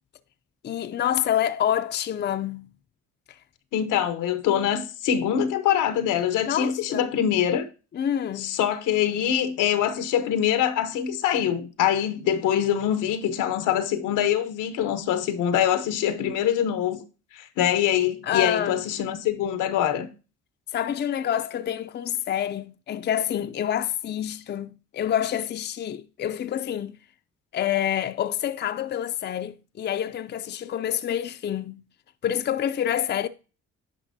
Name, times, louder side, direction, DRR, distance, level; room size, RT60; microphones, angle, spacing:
voice 1, 0.6-2.7 3.3-3.4 6.4-7.1 7.9-8.6 18.2-18.8 20.7-27.0 27.5-31.8 32.2-33.3, left 10 dB, 35° left, 0.5 m, -27 dB
voice 2, 3.7-7.7 8.4-17.0 17.3-20.1, left 10 dB, 90° left, 0.9 m, -24 dB
9.7 x 5.4 x 2.6 m
cardioid pair, 90°, 30 cm